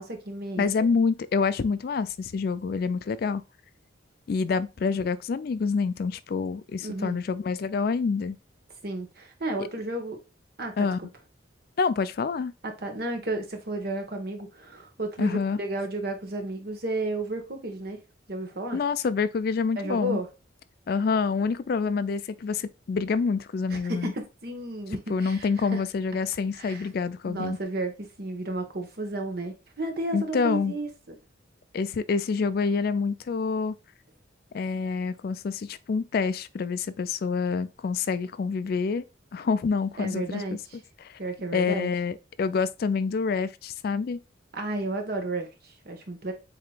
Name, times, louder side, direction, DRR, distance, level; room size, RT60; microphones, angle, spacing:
voice 1, 0.0-0.9 6.8-7.2 8.8-10.2 10.6-10.9 12.6-18.0 18.3-18.8 19.8-20.3 23.7-25.8 26.5-26.9 27.2-31.1 40.0-40.8 41.2-41.9 44.5-46.3, right 2 dB, 50° right, 1.2 m, -33 dB
voice 2, 0.6-3.4 4.3-8.4 10.8-11.0 11.8-12.5 15.2-15.6 18.7-20.2 20.9-24.1 25.1-27.6 30.1-30.7 31.7-33.8 34.5-39.0 39.3-40.6 41.0-41.2 41.5-44.2, left 5 dB, 50° left, 0.3 m, -27 dB
7.7 x 2.9 x 2.3 m
head